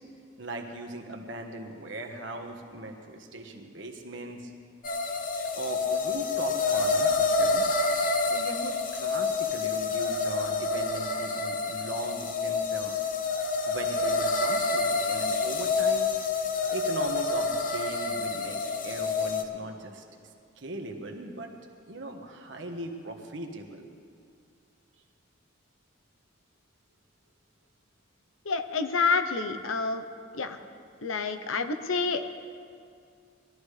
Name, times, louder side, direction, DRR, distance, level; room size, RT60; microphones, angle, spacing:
voice 1, 0.4-4.5 5.5-7.6 8.3-12.9 13.7-16.1 16.7-20.0 20.6-21.5 21.9-23.9, right 2 dB, 60° right, 3 dB, 1.3 m, -39 dB
sound 1, 4.8-19.4, left 3 dB, 40° left, 0.8 m, -28 dB
voice 2, 28.5-30.0 30.4-30.6 31.0-32.3, left 4 dB, 80° left, 8 dB, 0.8 m, -28 dB
20.5 x 13.5 x 3.3 m, 2.3 s
head